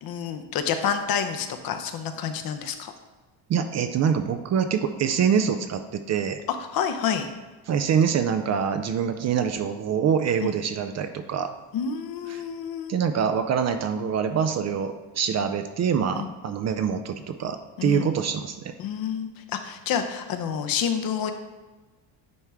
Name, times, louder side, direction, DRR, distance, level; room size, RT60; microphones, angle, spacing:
voice 1, 0.0-2.9 6.5-7.3 10.4-10.5 11.7-12.9 16.1-16.3 17.8-18.1 18.8-21.3, left 8 dB, 55° left, 7 dB, 0.7 m, -28 dB
voice 2, 3.5-6.4 7.7-11.5 12.3-12.4 12.9-18.7, right 7 dB, 40° right, 8 dB, 0.4 m, -25 dB
9.3 x 3.1 x 3.5 m, 1.2 s
cardioid pair, 100°, 44 cm